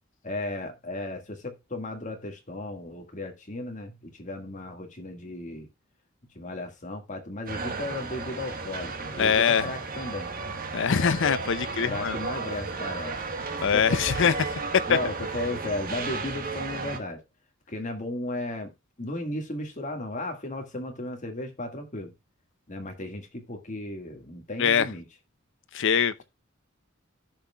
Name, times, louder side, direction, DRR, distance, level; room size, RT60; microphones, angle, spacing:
voice 1, 0.2-5.7 6.4-10.3 11.8-13.2 13.7-14.1 14.9-17.2 17.7-18.7 19.0-22.1 22.7-25.0, left 2 dB, 40° left, 1.8 m, -35 dB
sound 1, 7.5-17.0, right 3 dB, 45° right, 1.5 m, -34 dB
voice 2, 9.2-9.6 10.7-12.2 13.6-14.3 14.9-15.0 24.6-24.9 25.7-26.2, left 7 dB, 65° left, 0.6 m, -23 dB
15.5 x 5.7 x 2.3 m
head